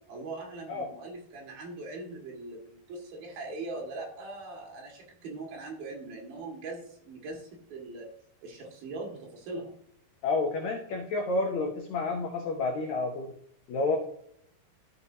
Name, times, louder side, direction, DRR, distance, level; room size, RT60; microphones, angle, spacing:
voice 1, 0.1-8.1 8.4-9.7, right 2 dB, 65° right, -1 dB, 3.7 m, -41 dB
voice 2, 10.2-13.3 13.7-14.0, left 3 dB, 80° left, 2 dB, 1.6 m, -30 dB
13.5 x 5.9 x 2.8 m, 0.67 s
omnidirectional pair, 4.7 m